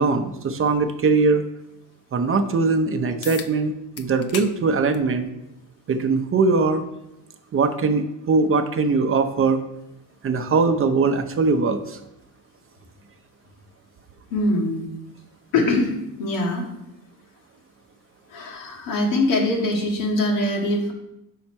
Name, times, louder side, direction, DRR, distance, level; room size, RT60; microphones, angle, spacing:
voice 1, 0.0-1.4 2.1-5.3 5.9-6.8 7.5-9.6 10.2-12.0, right 4 dB, 30° right, 7 dB, 0.6 m, -21 dB
sound 1, 3.2-3.5 4.0-4.5 4.9-5.1 6.2-6.3 11.2-11.3, left 7 dB, 35° left, 0.5 m, -35 dB
voice 2, 14.3-14.9 15.5-15.9 16.2-16.7 18.3-20.9, left 2 dB, 90° left, 1 dB, 1.6 m, -22 dB
5.6 x 4.2 x 6.0 m, 0.85 s
cardioid pair, 115°, 43 cm